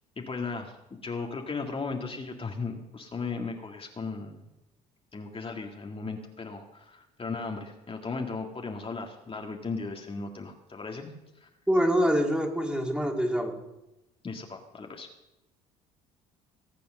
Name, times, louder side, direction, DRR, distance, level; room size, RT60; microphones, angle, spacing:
voice 1, 0.2-0.8 1.0-4.4 5.1-11.5 14.2-15.1, left 4 dB, 30° left, 2 dB, 2.1 m, -36 dB
voice 2, 11.7-13.6, equal, 5° right, 2 dB, 2.9 m, -25 dB
18.5 x 8.5 x 6.6 m, 0.95 s
hypercardioid pair, 60°, 19 cm